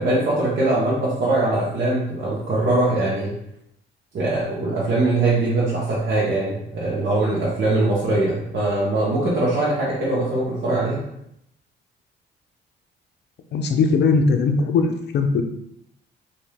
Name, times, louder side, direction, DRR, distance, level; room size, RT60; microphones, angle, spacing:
voice 1, 0.0-3.3 4.1-11.0, right 2 dB, 65° right, -7 dB, 1.0 m, -22 dB
voice 2, 13.5-15.4, left 4 dB, 60° left, 5 dB, 0.5 m, -19 dB
3.2 x 2.7 x 3.3 m, 0.77 s
cardioid pair, 90°, 20 cm